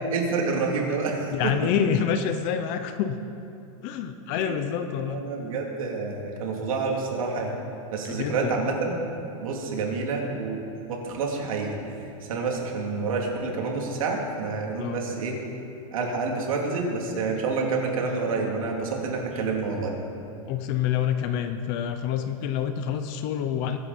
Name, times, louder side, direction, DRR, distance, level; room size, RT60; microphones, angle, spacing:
voice 1, 0.1-1.5 4.5-4.6 5.0-7.6 7.9-9.1 9.4-10.6 10.9-11.8 12.2-15.4 15.9-19.9, right 4 dB, 75° right, 0 dB, 3.1 m, -28 dB
voice 2, 1.3-3.2 3.8-5.2 8.0-8.5 14.8-15.0 20.5-23.8, left 9 dB, 25° left, 9 dB, 0.5 m, -27 dB
23.0 x 11.0 x 4.3 m, 2.8 s
supercardioid pair, 180°, 18 cm